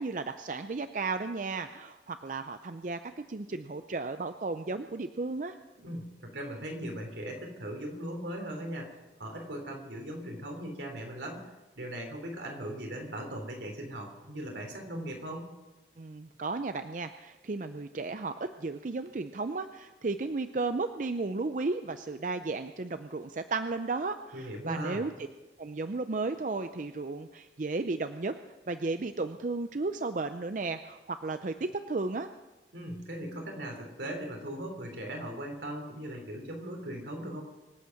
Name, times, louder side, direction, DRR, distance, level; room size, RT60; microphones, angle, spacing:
voice 1, 0.0-5.6 16.0-25.1 25.6-28.4 28.7-32.3, right 3 dB, 45° right, 9 dB, 0.5 m, -34 dB
voice 2, 5.8-11.5 11.8-15.5 24.3-25.0 32.7-37.4, right 1 dB, 80° right, 2 dB, 3.4 m, -39 dB
25.0 x 8.5 x 5.9 m, 1.1 s
head